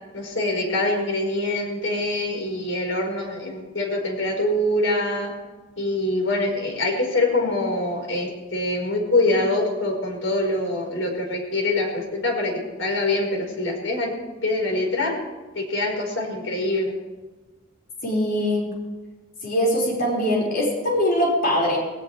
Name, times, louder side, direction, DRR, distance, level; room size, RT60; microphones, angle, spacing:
voice 1, 0.1-5.3 5.8-14.1 14.4-15.1 15.5-16.9, left 2 dB, 90° left, 1 dB, 4.8 m, -24 dB
voice 2, 18.0-18.7 19.4-21.8, equal, 50° left, -3 dB, 5.5 m, -22 dB
20.0 x 18.0 x 3.4 m, 1.3 s
head